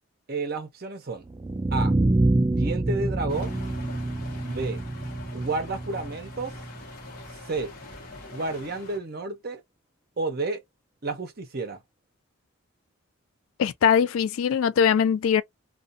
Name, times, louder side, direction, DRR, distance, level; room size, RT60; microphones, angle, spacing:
voice 1, 0.3-1.3 1.7-1.9 2.5-3.6 4.4-4.8 5.3-6.6 7.5-7.8 8.3-9.6 10.2-10.6 11.0-11.8, right 3 dB, 45° right, 0.7 m, -31 dB
sound 1, 1.2-7.3, right 2 dB, 20° right, 0.3 m, -27 dB
sound 2, 3.3-9.0, left 2 dB, 45° left, 0.9 m, -44 dB
voice 2, 13.6-15.4, left 7 dB, 75° left, 0.3 m, -21 dB
2.4 x 2.3 x 2.6 m
head